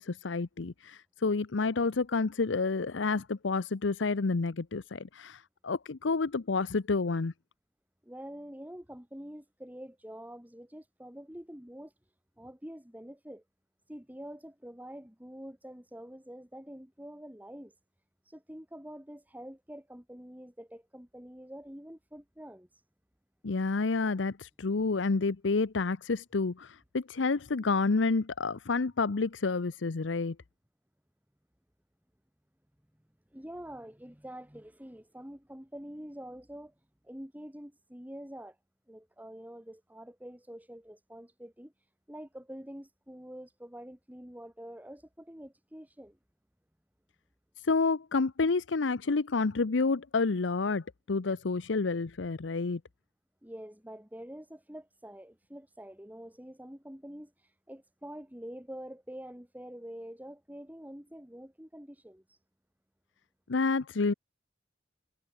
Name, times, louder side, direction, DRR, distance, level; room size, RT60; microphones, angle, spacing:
voice 1, 0.0-7.3 23.4-30.4 47.6-52.8 63.5-64.1, left 4 dB, 85° left, 0.7 m, -29 dB
voice 2, 8.0-11.9 12.4-13.4 13.9-17.7 18.2-22.7 33.3-36.7 37.0-38.6 38.9-41.7 42.1-46.2 53.4-62.4, equal, 10° right, 2.1 m, -46 dB
head